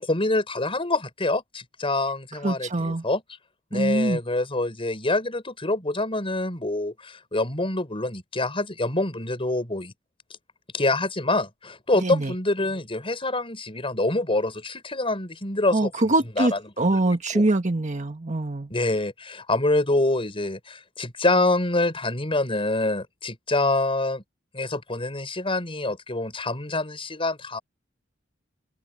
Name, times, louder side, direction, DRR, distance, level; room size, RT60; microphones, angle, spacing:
voice 1, 0.0-3.2 3.7-9.9 10.7-15.9 16.4-17.4 18.7-24.2 24.5-27.6, left 2 dB, 30° left, 5.6 m, -26 dB
voice 2, 2.4-3.0 3.7-4.2 12.0-12.3 15.7-18.7, right 2 dB, 40° right, 1.4 m, -24 dB
open air
head